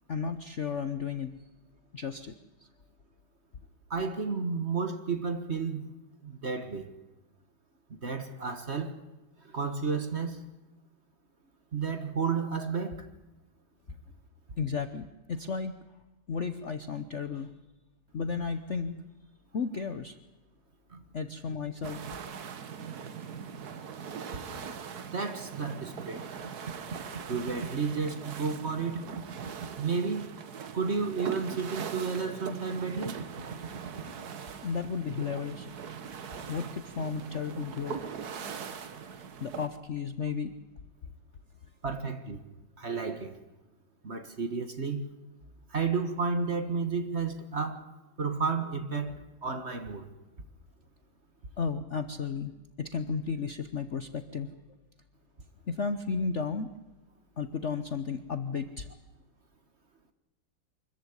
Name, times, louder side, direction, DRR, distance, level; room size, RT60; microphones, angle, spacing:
voice 1, 0.1-1.3 1.9-2.3 14.6-15.7 16.3-17.5 18.1-19.0 19.5-20.2 21.1-22.0 34.6-35.8 36.5-38.0 39.1-40.5 51.6-52.5 52.8-54.5 55.7-56.7 57.4-58.9, left 5 dB, 50° left, 0.9 m, -33 dB
voice 2, 3.9-5.9 6.2-6.9 8.0-9.0 9.4-10.4 11.7-13.0 20.9-21.0 25.0-26.5 27.3-29.1 29.8-30.3 30.7-33.1 41.8-42.4 42.8-43.4 44.0-45.1 45.7-47.9 48.2-50.1, right 5 dB, 35° right, 1.5 m, -32 dB
sound 1, 21.8-39.7, right 7 dB, 50° right, 1.7 m, -41 dB
24.5 x 14.5 x 9.8 m
omnidirectional pair, 2.2 m